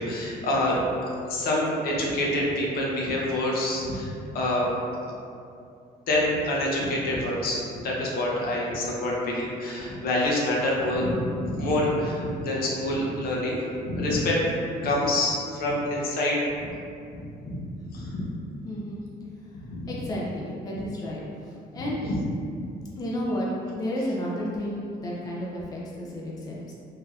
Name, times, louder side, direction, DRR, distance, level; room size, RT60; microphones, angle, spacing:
voice 1, 0.0-4.1 4.3-4.7 5.0-5.1 6.1-14.6 14.8-16.7 17.1-18.3 19.7-19.9 22.1-22.2 22.6-22.7, left 1 dB, 60° left, -4 dB, 0.7 m, -27 dB
voice 2, 18.6-19.0 19.9-22.1 23.0-26.7, equal, 20° left, -4 dB, 0.4 m, -32 dB
3.2 x 2.7 x 2.3 m, 2.5 s
cardioid pair, 110°, 17 cm